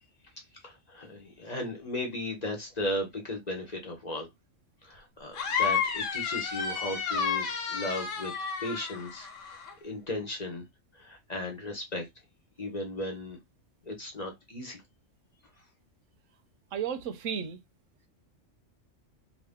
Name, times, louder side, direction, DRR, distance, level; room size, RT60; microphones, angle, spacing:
voice 1, 0.6-4.3 4.8-8.3 8.6-9.3 9.8-10.6 10.9-12.1 12.6-13.4 13.9-14.8, left 1 dB, 35° left, 0.9 m, -36 dB
sound 1, 5.3-9.7, left 6 dB, 80° left, 1.2 m, -31 dB
voice 2, 16.7-17.6, right 7 dB, 85° right, 1.0 m, -33 dB
2.9 x 2.6 x 3.5 m
omnidirectional pair, 1.3 m